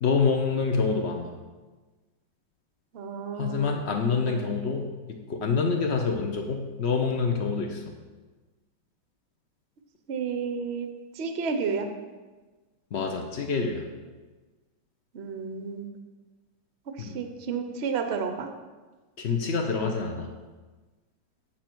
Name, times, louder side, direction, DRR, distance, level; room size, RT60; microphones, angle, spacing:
voice 1, 0.0-1.3 3.4-4.8 5.3-7.8 12.9-13.8 17.0-17.2 19.2-20.3, left 5 dB, 80° left, 3 dB, 0.6 m, -26 dB
voice 2, 2.9-3.8 4.2-4.6 10.1-10.9 11.1-11.9 15.1-15.9 17.0-18.5, right 5 dB, 65° right, 6 dB, 0.6 m, -31 dB
9.0 x 7.0 x 4.5 m, 1.3 s
omnidirectional pair, 2.2 m